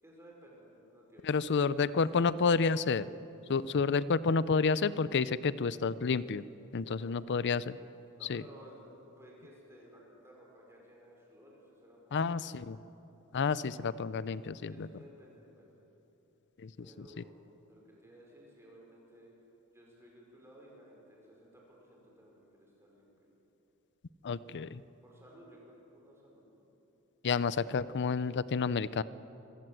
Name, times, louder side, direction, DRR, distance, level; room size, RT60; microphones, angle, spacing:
voice 1, 0.0-2.4 3.5-3.7 6.9-7.3 8.2-12.5 12.8-12.9 14.7-15.8 16.8-19.3 19.7-23.3 25.0-26.6, equal, 10° right, -2 dB, 5.2 m, -56 dB
voice 2, 1.2-3.1 3.5-6.4 6.7-7.8 8.3-8.4 12.1-12.8 13.3-14.9 16.6-16.7 24.2-24.8 27.2-29.0, left 5 dB, 55° left, 18 dB, 0.5 m, -30 dB
25.5 x 16.0 x 7.7 m, 3.0 s
head